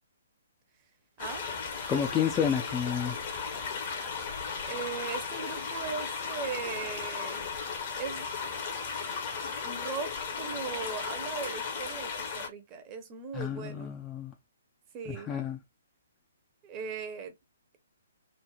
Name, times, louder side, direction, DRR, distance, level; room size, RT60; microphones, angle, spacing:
sound 1, 1.2-12.5, left 5 dB, 40° left, 0.8 m, -36 dB
voice 1, 1.9-3.2 13.3-14.3 15.1-15.6, left 8 dB, 15° left, 0.4 m, -30 dB
voice 2, 4.6-7.5 8.0-8.3 9.6-14.0 14.9-15.3 16.6-17.3, right 6 dB, 25° right, 0.7 m, -38 dB
3.2 x 2.0 x 2.2 m
figure-of-eight pair, 125°, 0 cm